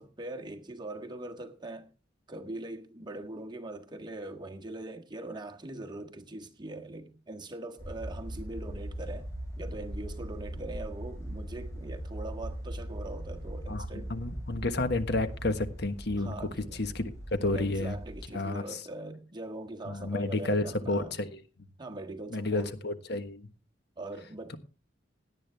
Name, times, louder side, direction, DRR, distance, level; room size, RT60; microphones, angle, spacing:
voice 1, 0.0-1.9 2.3-9.3 9.6-14.1 16.2-16.8 17.4-21.2 21.8-22.7 24.0-24.6, right 2 dB, 25° right, 1.6 m, -41 dB
sound 1, 7.8-18.2, right 1 dB, 15° left, 6.2 m, -40 dB
voice 2, 13.7-17.9 18.3-18.8 19.9-21.4 22.3-23.5, left 2 dB, 60° left, 1.4 m, -31 dB
17.5 x 11.0 x 3.5 m
head